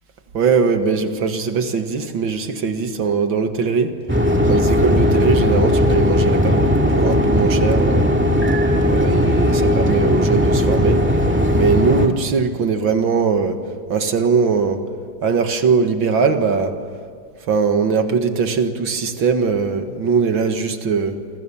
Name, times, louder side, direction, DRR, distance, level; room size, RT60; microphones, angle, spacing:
voice 1, 0.3-3.9 4.5-8.1 8.9-11.0 11.5-13.6 13.9-14.8 15.2-16.8 17.5-21.2, right 5 dB, 80° right, 7 dB, 2.4 m, -20 dB
sound 1, 4.1-12.1, left 1 dB, 5° right, 2.1 m, -17 dB
29.0 x 26.0 x 7.2 m, 2.1 s
omnidirectional pair, 2.1 m